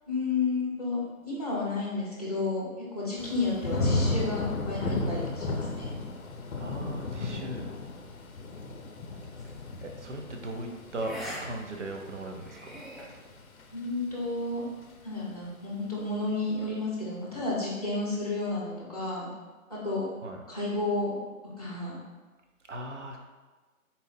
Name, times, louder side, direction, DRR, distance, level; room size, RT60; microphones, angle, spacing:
voice 1, 0.1-6.0 13.7-14.7 15.0-19.3 19.7-20.0 20.5-21.1 21.6-22.0, left 3 dB, 25° left, -5 dB, 0.7 m, -31 dB
Thunder / Rain, 3.2-14.1 14.5-15.0, left 2 dB, 75° left, 0.6 m, -34 dB
voice 2, 6.6-7.6 9.8-12.8 20.2-20.4 22.7-23.2, right 1 dB, 55° right, 2 dB, 0.6 m, -38 dB
sound 1, 9.4-9.6 11.0-11.4 11.8-11.9 12.4-13.0, equal, ahead, 0.3 m, -41 dB
4.1 x 2.1 x 3.9 m, 1.3 s
figure-of-eight pair, 175°, 42 cm